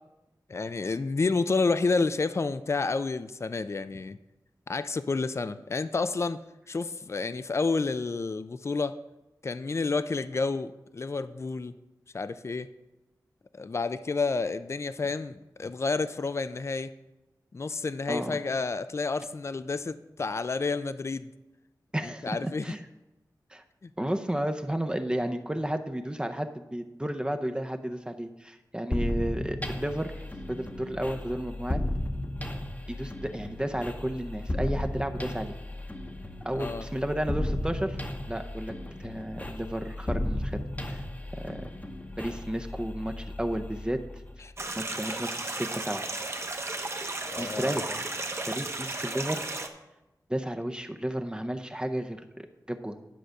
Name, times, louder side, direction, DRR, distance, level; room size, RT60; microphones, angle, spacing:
voice 1, 0.5-4.2 4.7-6.4 6.7-9.0 9.4-11.7 12.1-12.7 13.5-16.9 17.5-21.3 22.2-22.7 23.8-23.9 36.6-36.9 47.3-47.8, left 4 dB, 40° left, 13 dB, 0.4 m, -30 dB
voice 2, 18.1-18.4 21.9-22.3 22.6-22.8 23.5-23.6 24.0-31.8 32.9-35.5 36.4-38.0 38.3-41.0 41.4-41.6 42.2-44.0 44.8-46.1 47.4-48.0 48.5-49.4 50.3-53.0, right 1 dB, 15° right, 6 dB, 0.7 m, -32 dB
sound 1, 28.9-44.5, left 1 dB, 20° left, 0.9 m, -35 dB
sound 2, 44.6-49.7, right 2 dB, 40° right, 0.9 m, -34 dB
10.5 x 4.8 x 6.5 m, 0.99 s
wide cardioid pair, 80°, 7 cm